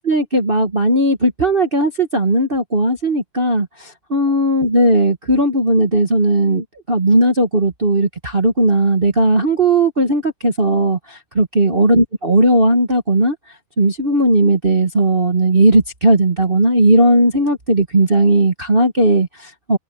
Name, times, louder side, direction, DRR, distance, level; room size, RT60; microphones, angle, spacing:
voice 1, 0.0-13.3 13.8-19.8, right 1 dB, 85° right, 0.5 m, -16 dB
omnidirectional pair, 4.0 m